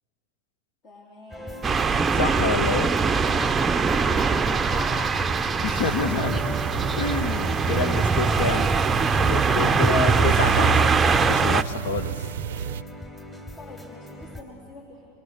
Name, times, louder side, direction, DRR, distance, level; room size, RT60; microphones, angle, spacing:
voice 1, 0.8-1.7 4.7-5.5 7.6-7.9 8.3-10.2 13.6-15.1, left 1 dB, 45° left, 0 dB, 3.2 m, -46 dB
sound 1, 1.3-14.4, equal, 15° left, 3.6 m, -40 dB
sound 2, 1.6-11.6, right 5 dB, 20° right, 0.6 m, -22 dB
voice 2, 2.1-2.9 5.6-6.6 7.0-8.7 9.2-10.9 11.2-12.1, left 5 dB, 75° left, 11 dB, 1.1 m, -28 dB
sound 3, 5.7-12.8, right 9 dB, 80° right, 0.4 m, -33 dB
27.0 x 22.0 x 6.6 m, 2.8 s
hypercardioid pair, 110°, 0 cm